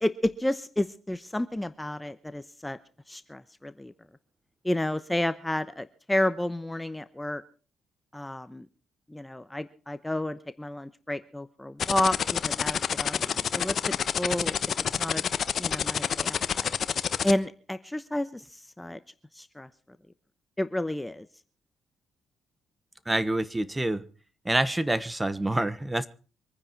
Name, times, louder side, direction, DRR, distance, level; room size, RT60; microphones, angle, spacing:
voice 1, 0.0-2.8 3.1-3.9 4.6-7.4 8.1-8.7 9.1-13.8 14.1-14.5 15.0-15.2 15.6-16.7 17.2-19.0 19.3-19.7 20.6-21.3, left 1 dB, 10° left, 12 dB, 0.9 m, -31 dB
sound 1, 11.8-17.3, left 7 dB, 55° left, 1.0 m, -27 dB
voice 2, 23.1-24.0 24.4-26.1, right 1 dB, 15° right, 16 dB, 1.1 m, -27 dB
25.0 x 9.8 x 4.6 m, 0.38 s
cardioid pair, 90°, 0 cm